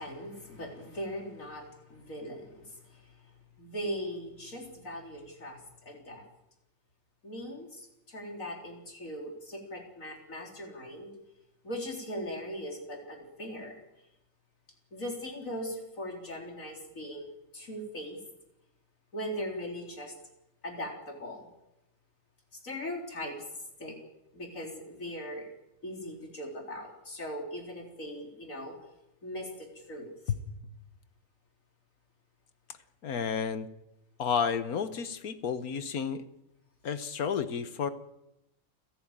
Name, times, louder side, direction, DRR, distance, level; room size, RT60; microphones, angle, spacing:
voice 1, 0.0-6.2 7.2-11.1 11.6-13.8 14.9-17.3 17.5-18.2 19.1-20.1 20.6-21.5 22.6-23.4 23.8-24.0 24.3-25.4 25.8-28.8 29.2-30.1, equal, 65° left, 2 dB, 4.4 m, -40 dB
voice 2, 33.0-33.7 34.2-36.2 36.8-37.9, left 7 dB, 90° left, 12 dB, 1.7 m, -31 dB
30.0 x 11.0 x 8.9 m, 0.89 s
omnidirectional pair, 1.5 m